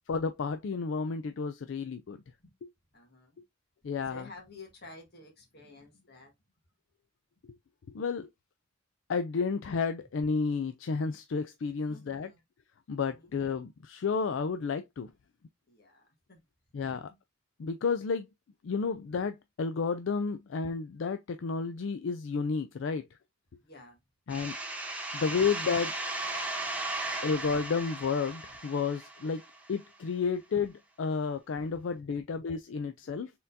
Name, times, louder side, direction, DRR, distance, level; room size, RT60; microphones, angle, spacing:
voice 1, 0.1-2.2 3.8-4.2 7.9-8.3 9.1-12.3 12.9-15.1 16.7-17.1 17.6-18.3 18.6-23.1 24.3-24.6 25.1-25.9 27.2-29.4 29.7-33.3, left 5 dB, 80° left, 0.4 m, -31 dB
voice 2, 2.9-3.4 4.0-6.3 11.8-12.4 13.1-13.3 15.7-16.4 23.6-24.0, left 2 dB, 55° left, 1.7 m, -52 dB
sound 1, 24.3-29.8, right 2 dB, 10° right, 0.9 m, -36 dB
4.3 x 3.7 x 2.6 m
head